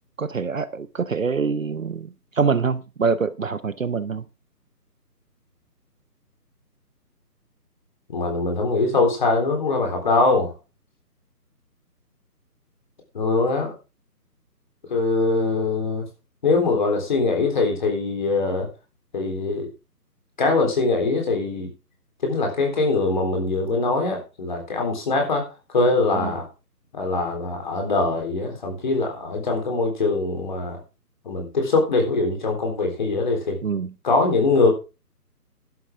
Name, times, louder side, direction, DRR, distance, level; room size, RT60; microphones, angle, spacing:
voice 1, 0.2-4.3 26.1-26.3 33.6-33.9, right 5 dB, 55° right, 0.8 m, -25 dB
voice 2, 8.1-10.5 13.1-13.7 14.9-16.1 16.4-18.7 19.1-19.7 20.4-21.7 22.2-26.5 26.9-30.8 31.3-33.6 34.0-34.7, left 3 dB, 30° left, 3.7 m, -22 dB
12.0 x 11.5 x 3.6 m
hypercardioid pair, 175°, 49 cm